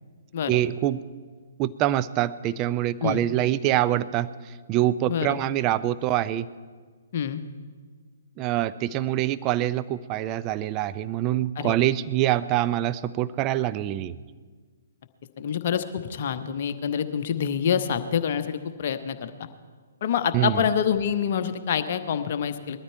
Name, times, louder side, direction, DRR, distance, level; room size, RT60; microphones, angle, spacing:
voice 1, 0.5-1.1 1.6-6.5 8.4-14.1 20.3-20.6, right 13 dB, 25° right, 14 dB, 0.4 m, -25 dB
voice 2, 5.1-5.4 7.1-7.4 11.6-11.7 15.4-19.3 20.0-22.8, left 8 dB, 45° left, 9 dB, 0.9 m, -26 dB
20.5 x 13.0 x 4.6 m, 1.5 s
figure-of-eight pair, 125°, 0 cm